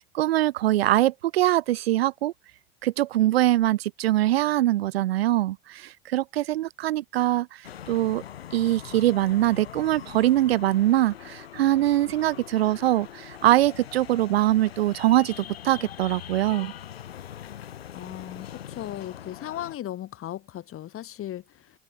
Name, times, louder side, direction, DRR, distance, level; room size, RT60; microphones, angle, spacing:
voice 1, 0.0-2.3 2.8-8.2 8.5-16.7, right 14 dB, 90° right, 0.5 m, -23 dB
sound 1, 7.6-19.8, left 10 dB, 90° left, 4.3 m, -42 dB
voice 2, 17.9-21.7, left 12 dB, 45° left, 5.3 m, -37 dB
open air
hypercardioid pair, 80°, 29 cm